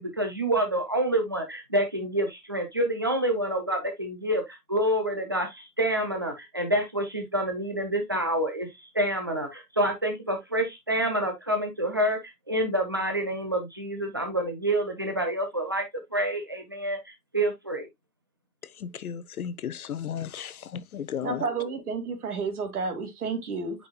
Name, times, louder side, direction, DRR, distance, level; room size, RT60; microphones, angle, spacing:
voice 1, 0.0-15.8 16.1-17.9, right 1 dB, 15° right, 0.6 m, -28 dB
voice 2, 18.8-21.4, left 8 dB, 60° left, 0.9 m, -34 dB
voice 3, 21.2-23.9, right 4 dB, 65° right, 2.7 m, -31 dB
8.2 x 5.7 x 2.3 m
hypercardioid pair, 170°, 49 cm